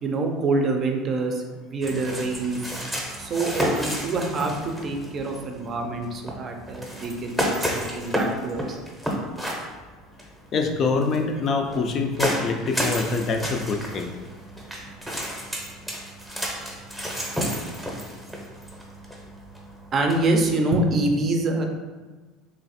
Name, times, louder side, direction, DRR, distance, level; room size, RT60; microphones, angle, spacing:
voice 1, 0.0-2.6 3.2-8.8 19.9-21.6, right 2 dB, 35° right, 3 dB, 0.5 m, -26 dB
sound 1, 1.8-20.5, equal, ahead, 0.7 m, -32 dB
voice 2, 10.5-14.1, left 4 dB, 40° left, 4 dB, 0.4 m, -25 dB
3.2 x 2.4 x 4.1 m, 1.3 s
supercardioid pair, 120°, 0 cm